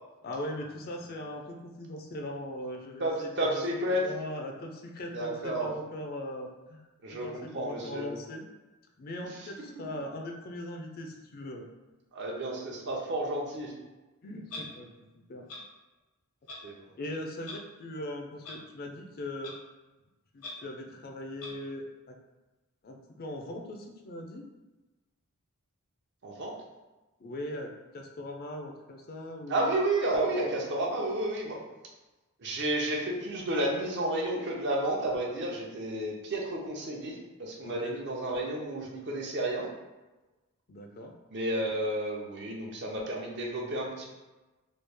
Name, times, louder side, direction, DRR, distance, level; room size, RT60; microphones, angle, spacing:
voice 1, 0.2-3.6 3.9-6.8 7.1-8.5 9.0-11.7 14.2-14.9 15.3-15.5 17.0-19.6 20.3-22.2 22.8-24.4 27.2-27.7 27.9-29.7 37.6-37.9 40.7-41.1, left 1 dB, 40° left, 2 dB, 0.4 m, -40 dB
voice 2, 3.0-4.1 5.1-5.7 7.0-8.1 9.4-9.5 12.1-13.7 16.6-16.9 26.2-26.6 29.5-31.6 32.4-39.7 41.3-44.1, right 1 dB, 50° right, -1 dB, 0.7 m, -31 dB
Clock, 14.5-14.6 15.5-15.6 16.5-16.6 17.4-17.6 18.4-18.5 19.4-19.5 20.4-20.5 21.4-21.5, left 3 dB, 85° left, 0.9 m, -40 dB
3.1 x 2.3 x 3.3 m, 1.1 s
head